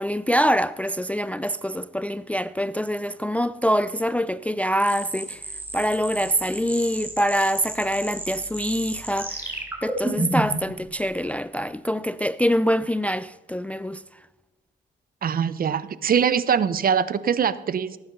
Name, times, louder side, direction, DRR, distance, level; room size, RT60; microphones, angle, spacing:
voice 1, 0.0-5.4 5.7-9.5 9.8-14.0, equal, 5° left, 0.4 m, -25 dB
sound 1, 4.8-10.6, right 1 dB, 10° right, 4.1 m, -31 dB
voice 2, 15.2-18.0, right 7 dB, 45° right, 0.8 m, -23 dB
17.5 x 9.4 x 6.8 m
cardioid pair, 90°, 20 cm